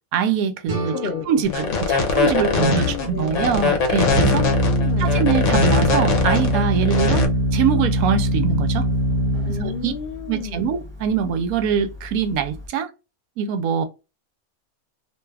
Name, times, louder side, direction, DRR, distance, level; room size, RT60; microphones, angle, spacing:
voice 1, 0.1-1.0 1.3-4.4 5.0-7.3 7.5-8.9 9.6-9.9 10.3-12.9 13.4-13.8, right 7 dB, 85° right, 1.1 m, -23 dB
sound 1, 0.7-3.5, right 1 dB, 50° right, 1.0 m, -35 dB
voice 2, 0.9-1.8 2.4-3.8 4.3-5.2 9.4-10.8, left 6 dB, 85° left, 0.5 m, -32 dB
sound 2, 1.4-7.2, left 4 dB, 60° left, 1.0 m, -21 dB
Organ, 2.2-12.7, equal, 25° right, 0.6 m, -23 dB
2.8 x 2.3 x 3.2 m
omnidirectional pair, 1.5 m